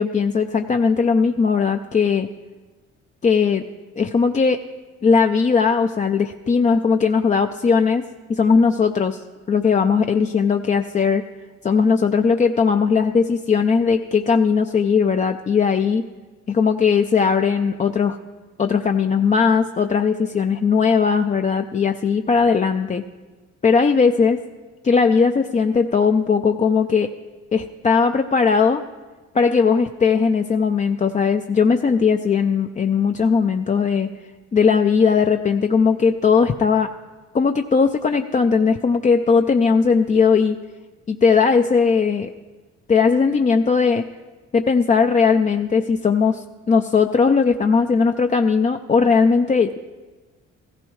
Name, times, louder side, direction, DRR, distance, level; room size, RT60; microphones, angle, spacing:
voice 1, 0.0-2.3 3.2-3.6 4.0-4.6 5.0-8.0 8.3-9.2 9.5-11.2 11.6-16.0 16.5-18.2 18.6-23.0 23.6-24.4 24.8-27.1 27.5-28.8 29.3-34.1 34.5-36.9 37.3-40.6 41.1-42.3 42.9-44.0 44.5-49.8, left 5 dB, 25° left, 6 dB, 0.4 m, -18 dB
15.0 x 15.0 x 3.1 m, 1.3 s
cardioid pair, 90°, 30 cm